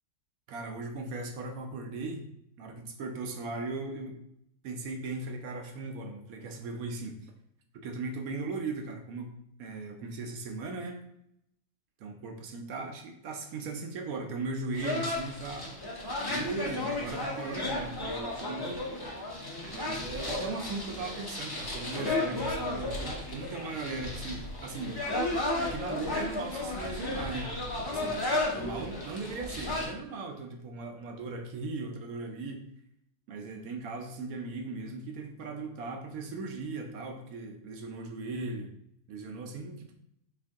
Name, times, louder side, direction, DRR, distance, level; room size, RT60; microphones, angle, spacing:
voice 1, 0.5-2.3 2.6-4.2 4.6-7.1 7.7-9.3 9.6-11.0 12.0-15.7 16.2-18.8 19.7-25.0 25.6-28.2 28.5-32.7 33.3-38.7 39.1-39.9, right 3 dB, 85° right, 3 dB, 1.1 m, -38 dB
sound 1, 14.7-29.9, left 2 dB, 25° left, 0.5 m, -34 dB
4.5 x 2.6 x 3.5 m, 0.74 s
omnidirectional pair, 1.5 m